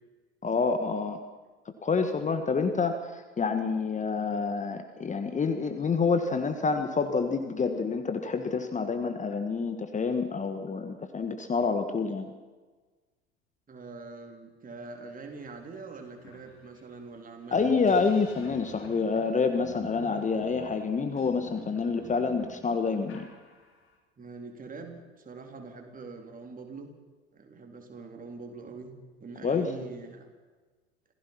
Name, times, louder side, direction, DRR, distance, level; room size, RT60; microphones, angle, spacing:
voice 1, 0.4-1.2 1.8-12.3 17.5-23.3 29.4-29.7, left 4 dB, 20° left, 7 dB, 1.7 m, -28 dB
voice 2, 13.7-17.8 24.2-26.9 27.3-28.9 29.2-30.3, right 4 dB, 25° right, 4 dB, 3.9 m, -44 dB
sound 1, 15.5-15.6 15.9-23.9, left 2 dB, 40° left, 5.0 m, -49 dB
27.0 x 16.5 x 6.0 m, 1.3 s
figure-of-eight pair, 70°, 33 cm